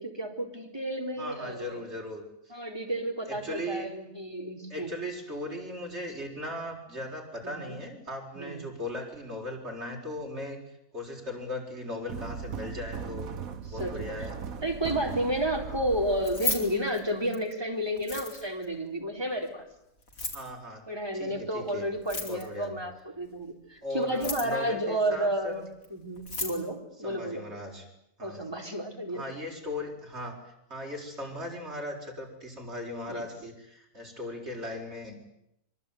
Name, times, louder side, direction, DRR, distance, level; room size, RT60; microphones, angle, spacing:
voice 1, 0.0-1.8 2.5-4.9 7.4-7.8 8.4-8.7 13.0-13.3 13.8-14.3 14.6-19.6 20.9-25.6 25.9-27.4 28.2-29.2 33.1-33.3, right 1 dB, 20° right, 2 dB, 4.3 m, -31 dB
voice 2, 1.1-2.5 3.3-3.9 4.7-10.6 10.9-13.3 13.7-14.4 15.6-15.9 20.3-20.8 21.1-21.8 22.2-22.8 23.8-25.6 27.0-27.9 28.2-28.5 29.1-35.2, left 1 dB, 50° right, 1 dB, 6.7 m, -38 dB
sound 1, 12.1-17.3, right 6 dB, 80° right, 1.7 m, -39 dB
Keys jangling, 16.1-17.5 18.0-18.6 20.0-20.5 22.0-22.6 24.0-24.7 25.8-25.9 26.2-26.6, left 3 dB, 85° left, 4.7 m, -34 dB
25.0 x 24.0 x 9.6 m, 0.80 s
omnidirectional pair, 1.4 m